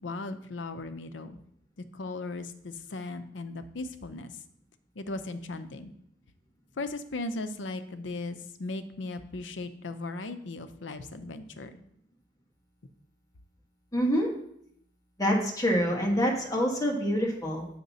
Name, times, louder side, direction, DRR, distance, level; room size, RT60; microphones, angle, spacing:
voice 1, 0.0-1.4 1.9-4.3 5.0-5.9 6.8-11.8, left 2 dB, 75° left, 10 dB, 0.6 m, -37 dB
voice 2, 13.9-14.3 15.2-17.7, equal, 20° left, 0 dB, 1.3 m, -26 dB
7.7 x 5.8 x 4.0 m, 0.71 s
head